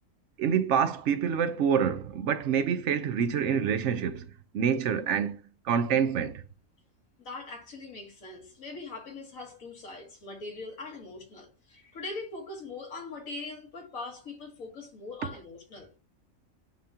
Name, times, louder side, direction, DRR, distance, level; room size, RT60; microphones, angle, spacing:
voice 1, 0.4-4.3 4.5-5.4 5.6-6.4, right 7 dB, 65° right, 0.9 m, -26 dB
voice 2, 7.2-15.9, left 3 dB, 90° left, 1.8 m, -41 dB
9.4 x 3.5 x 2.8 m
omnidirectional pair, 1.4 m